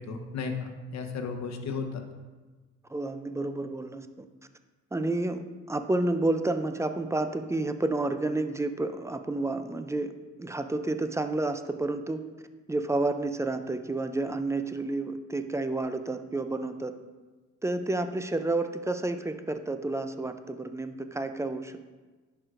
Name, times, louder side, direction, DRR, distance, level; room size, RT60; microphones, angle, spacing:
voice 1, 0.0-2.0, left 5 dB, 65° left, 4 dB, 0.9 m, -34 dB
voice 2, 2.9-4.1 4.9-10.1 10.4-12.2 12.7-17.0 17.6-21.8, right 2 dB, 10° right, 9 dB, 0.4 m, -30 dB
11.0 x 4.6 x 2.5 m, 1.3 s
cardioid pair, 90°, 30 cm